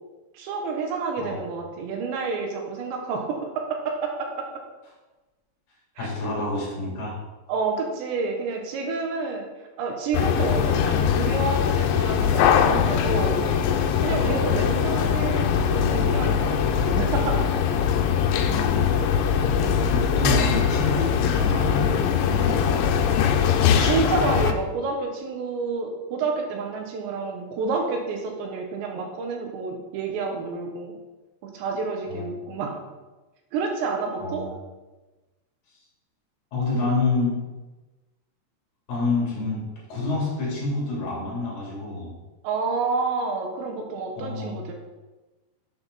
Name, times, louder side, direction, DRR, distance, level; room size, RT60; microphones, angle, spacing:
voice 1, 0.3-4.5 6.0-6.1 7.5-9.5 9.8-13.4 14.0-17.5 19.5-20.0 23.8-30.9 31.4-32.8 33.5-34.4 42.4-44.7, right 4 dB, 75° right, 2 dB, 3.5 m, -29 dB
voice 2, 6.0-7.2 14.2-14.4 18.4-19.0 19.9-23.0 32.1-32.2 34.2-34.5 36.5-37.4 38.9-39.6 39.9-42.1 44.2-44.6, left 2 dB, 50° left, -5 dB, 5.1 m, -28 dB
sound 1, 10.1-24.5, left 7 dB, 90° left, 3.0 m, -22 dB
11.5 x 7.9 x 4.2 m, 1.2 s
omnidirectional pair, 5.2 m